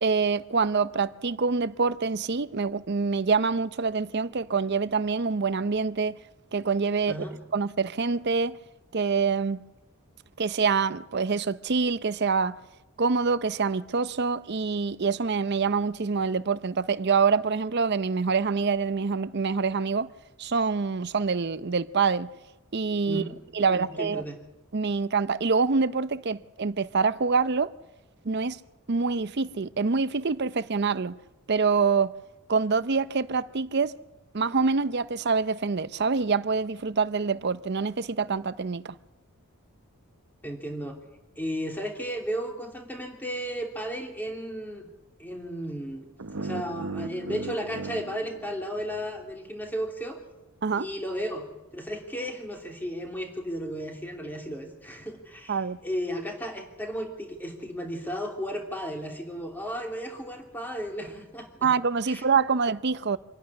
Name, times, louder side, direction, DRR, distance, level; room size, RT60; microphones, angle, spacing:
voice 1, 0.0-6.2 6.5-7.2 7.5-8.6 8.9-9.6 10.4-12.6 13.0-20.1 20.4-22.3 22.7-23.2 23.5-24.2 24.7-27.7 28.2-28.6 28.9-31.2 31.5-32.1 32.5-34.0 34.3-38.9 50.6-50.9 55.5-55.8 61.6-63.2, right 5 dB, 50° right, 0.6 m, -26 dB
voice 2, 7.1-7.4 23.0-24.4 40.4-41.0 41.4-44.9 45.2-46.1 46.4-50.2 50.8-61.7 62.1-62.2, equal, 10° left, 3.0 m, -34 dB
sound 1, 46.2-49.3, right 3 dB, 75° right, 0.9 m, -37 dB
25.5 x 11.5 x 9.8 m
head